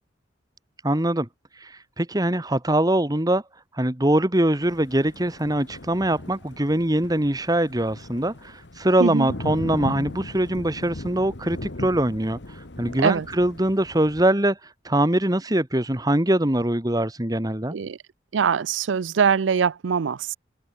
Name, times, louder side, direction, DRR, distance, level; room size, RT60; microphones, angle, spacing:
voice 1, 0.8-1.3 1.5-3.4 3.7-17.7, right 1 dB, 20° right, 1.6 m, -23 dB
Thunder, 4.6-14.3, left 1 dB, 65° left, 1.5 m, -38 dB
voice 2, 18.3-20.3, right 6 dB, 80° right, 0.5 m, -22 dB
head